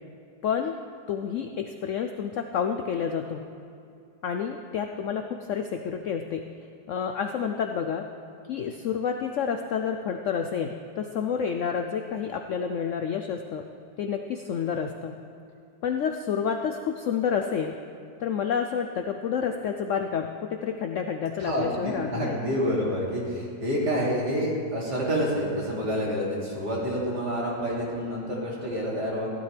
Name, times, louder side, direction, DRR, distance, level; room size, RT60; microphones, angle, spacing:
voice 1, 0.4-0.8 1.1-3.4 4.2-6.5 6.9-8.1 8.5-13.6 14.0-15.2 15.8-17.8 18.2-22.4, left 7 dB, 70° left, 5 dB, 0.7 m, -29 dB
voice 2, 21.4-29.3, equal, 70° right, -5 dB, 3.2 m, -28 dB
15.5 x 12.0 x 3.3 m, 2.6 s
omnidirectional pair, 1.8 m